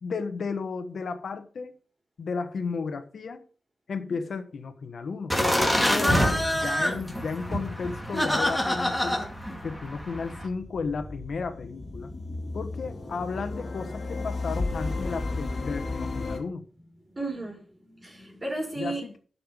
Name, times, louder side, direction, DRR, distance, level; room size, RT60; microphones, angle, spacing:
voice 1, 0.0-1.8 2.2-3.4 3.9-5.3 5.9-6.3 6.5-9.2 9.6-12.1 12.5-16.7 18.8-19.2, left 4 dB, 80° left, 1.3 m, -33 dB
sound 1, 5.3-10.5, equal, 5° left, 2.5 m, -26 dB
sound 2, 9.4-16.4, left 3 dB, 55° left, 2.2 m, -34 dB
voice 2, 16.9-19.0, right 2 dB, 30° right, 4.2 m, -35 dB
12.0 x 5.7 x 5.3 m
wide cardioid pair, 120°, 0 cm